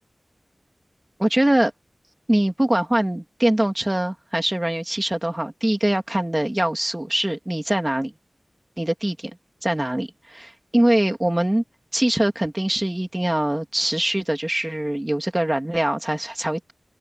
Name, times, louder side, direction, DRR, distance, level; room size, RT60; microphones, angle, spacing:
voice 1, 1.2-1.7 2.3-8.1 8.8-9.3 9.6-11.6 11.9-16.7, right 1 dB, 20° right, 2.6 m, -23 dB
open air
wide cardioid pair, 75°, 0 cm